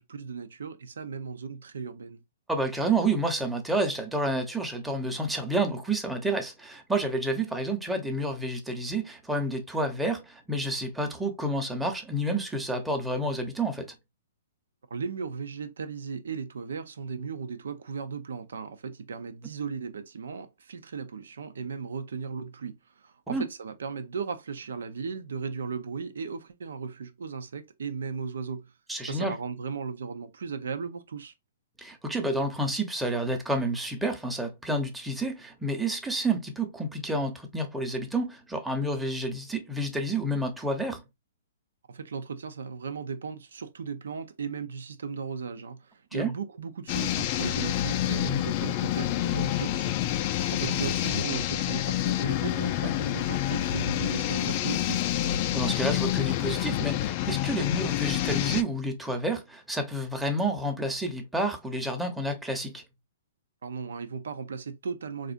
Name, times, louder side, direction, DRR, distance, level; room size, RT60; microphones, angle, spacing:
voice 1, 0.0-2.2 14.9-28.7 29.0-31.3 41.9-50.1 50.5-55.1 63.6-65.3, right 5 dB, 75° right, 0.7 m, -36 dB
voice 2, 2.5-13.9 23.3-23.5 28.9-29.3 31.8-41.0 46.1-46.3 52.8-52.9 55.5-62.8, right 1 dB, 5° right, 0.9 m, -29 dB
sound 1, 46.9-58.6, left 12 dB, 40° left, 0.4 m, -28 dB
4.1 x 2.6 x 2.5 m
hypercardioid pair, 125°, 0 cm